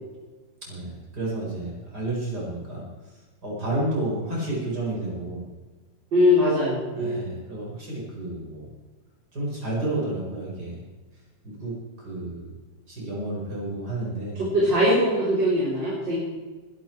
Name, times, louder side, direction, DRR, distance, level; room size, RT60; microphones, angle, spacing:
voice 1, 0.6-2.8 3.4-5.4 6.9-8.7 9.3-10.8 11.4-12.5 12.9-14.4, right 2 dB, 60° right, -4 dB, 5.4 m, -31 dB
voice 2, 6.1-7.2 14.5-16.2, left 1 dB, 90° right, -6 dB, 4.6 m, -21 dB
21.5 x 12.0 x 4.5 m, 1.3 s
omnidirectional pair, 1.9 m